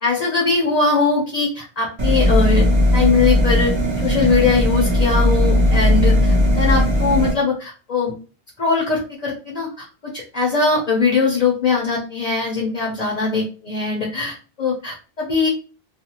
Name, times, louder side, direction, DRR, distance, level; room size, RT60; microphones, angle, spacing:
voice 1, 0.0-2.7 2.9-8.1 8.6-15.5, left 4 dB, 40° left, -2 dB, 0.7 m, -21 dB
sound 1, 2.0-7.3, left 1 dB, 35° right, 0.4 m, -17 dB
2.5 x 2.3 x 2.9 m, 0.36 s
omnidirectional pair, 1.2 m